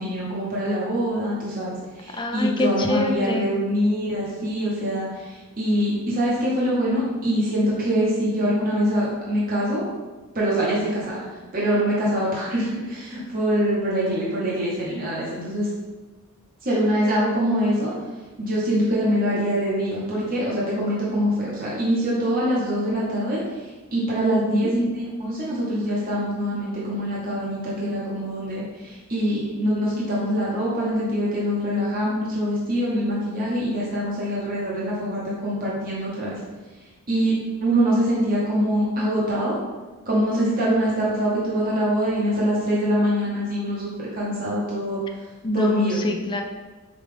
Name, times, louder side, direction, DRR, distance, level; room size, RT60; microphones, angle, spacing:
voice 1, 0.0-9.8 10.3-11.2 11.5-15.7 16.6-17.9 18.4-36.4 37.1-37.3 37.6-39.6 40.1-45.0 45.5-46.0, equal, 40° right, -6 dB, 0.9 m, -24 dB
voice 2, 2.1-3.5 24.3-24.7 45.4-46.4, left 2 dB, 20° left, 4 dB, 0.3 m, -26 dB
5.1 x 2.4 x 3.3 m, 1.3 s
head